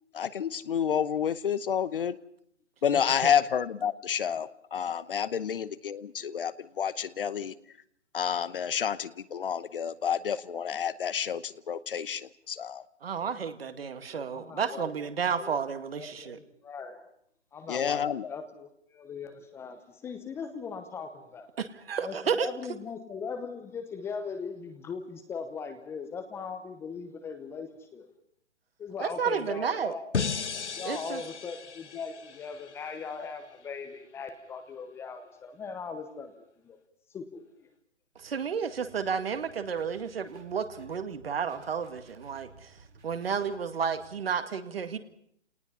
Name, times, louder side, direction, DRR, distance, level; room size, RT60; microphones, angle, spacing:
voice 1, 0.1-2.1 2.8-7.5 8.1-12.8 17.7-18.4, left 8 dB, 50° left, 16 dB, 1.0 m, -29 dB
voice 2, 13.0-16.4 21.6-22.5 29.0-29.9 30.8-31.2 38.2-42.7 43.0-45.0, right 6 dB, 55° right, 9 dB, 2.0 m, -32 dB
voice 3, 14.1-14.9 15.3-15.6 16.0-17.0 17.5-18.0 18.3-21.5 22.0-28.1 28.8-30.1 30.8-36.8 37.1-37.4, left 5 dB, 5° left, 7 dB, 0.9 m, -39 dB
sound 1, 30.1-33.3, left 5 dB, 75° left, 1.2 m, -35 dB
sound 2, 38.1-44.1, right 4 dB, 70° right, 7.0 m, -56 dB
29.5 x 19.0 x 5.5 m, 0.67 s
figure-of-eight pair, 140°, 35 cm